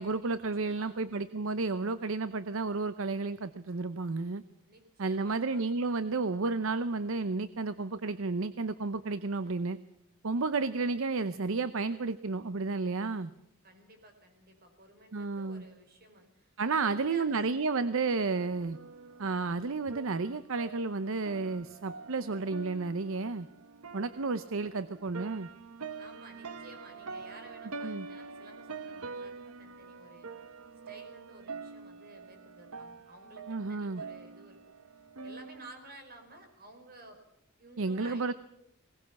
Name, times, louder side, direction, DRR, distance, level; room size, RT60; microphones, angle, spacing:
voice 1, 0.0-4.4 5.0-9.8 10.2-13.3 15.1-15.6 16.6-18.8 19.2-23.5 23.9-25.5 27.8-28.1 33.5-34.0 37.8-38.3, right 3 dB, 65° right, 14 dB, 0.7 m, -32 dB
voice 2, 0.5-1.0 4.6-5.6 9.3-9.7 10.3-10.8 13.6-17.4 26.0-30.3 30.8-34.6 34.9-37.2 37.6-38.3, right 2 dB, 45° right, 6 dB, 4.7 m, -54 dB
sound 1, 18.0-35.7, right 4 dB, 85° right, 1.1 m, -46 dB
20.5 x 18.5 x 7.1 m, 0.81 s
head